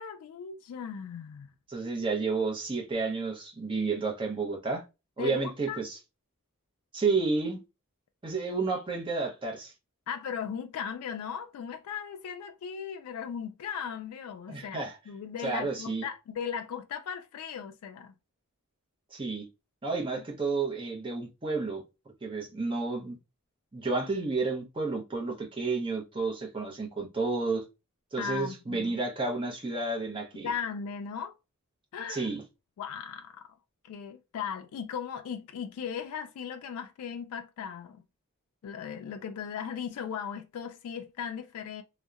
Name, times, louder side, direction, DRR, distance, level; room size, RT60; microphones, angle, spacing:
voice 1, 0.0-1.5 5.2-5.8 10.1-18.1 28.2-28.9 30.4-31.3 31.9-32.3 32.8-33.5 33.8-38.0 38.6-41.8, left 7 dB, 80° left, 0.3 m, -37 dB
voice 2, 1.7-4.8 5.2-6.0 6.9-7.6 8.2-9.7 14.5-15.0 15.4-16.0 19.1-19.5 19.8-21.8 22.2-23.2 23.7-27.6 28.1-30.5 32.1-32.4, right 3 dB, 25° right, 0.6 m, -31 dB
2.7 x 2.0 x 2.3 m
head